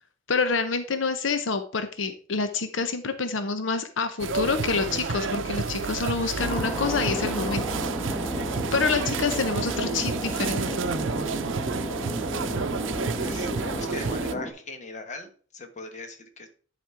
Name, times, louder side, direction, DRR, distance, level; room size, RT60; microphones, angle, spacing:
voice 1, 0.3-7.6 8.7-10.8, left 4 dB, 85° left, 9 dB, 0.8 m, -27 dB
sound 1, 4.2-14.3, right 4 dB, 85° right, 0.6 m, -30 dB
Thunder, 6.4-14.5, equal, 10° left, 1.5 m, -32 dB
voice 2, 13.2-16.5, left 3 dB, 40° left, 6 dB, 1.3 m, -39 dB
10.5 x 4.2 x 4.6 m, 0.42 s
head